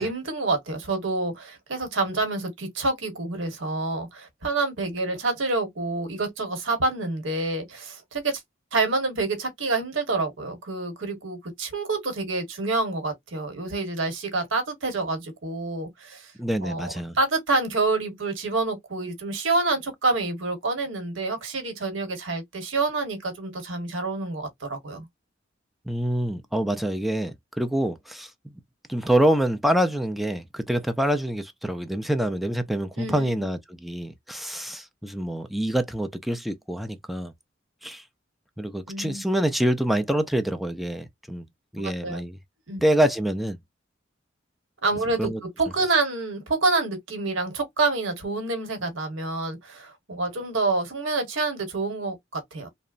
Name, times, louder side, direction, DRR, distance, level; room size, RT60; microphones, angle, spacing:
voice 1, 0.0-8.4 8.7-16.3 16.6-25.1 33.0-33.5 38.9-39.2 41.8-42.2 42.7-42.8 44.8-45.3 45.6-52.7, right 3 dB, 90° right, 1.1 m, -27 dB
voice 2, 16.4-17.2 25.9-28.6 28.9-37.3 37.8-38.0 38.6-41.4 41.7-42.4 42.8-43.6 45.2-45.4, right 1 dB, ahead, 0.4 m, -26 dB
2.9 x 2.2 x 2.4 m
head